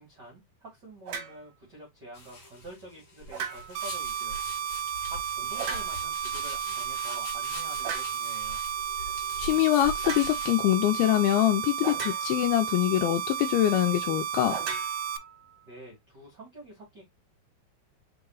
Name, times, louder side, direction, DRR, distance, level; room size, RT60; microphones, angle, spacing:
voice 1, 0.0-4.4 5.0-8.6 15.6-17.0, right 1 dB, 35° right, 1.8 m, -47 dB
sound 1, 1.1-1.4 3.3-3.9 5.5-6.2 7.8-8.2 10.0-10.3 11.8-12.6 14.5-15.6, right 6 dB, 60° right, 2.1 m, -37 dB
sound 2, 2.1-10.6, left 1 dB, 45° left, 1.6 m, -43 dB
sound 3, 3.8-15.2, right 8 dB, 80° right, 2.1 m, -33 dB
voice 2, 9.4-14.6, left 14 dB, 80° left, 2.3 m, -24 dB
4.9 x 4.7 x 2.3 m
omnidirectional pair, 4.5 m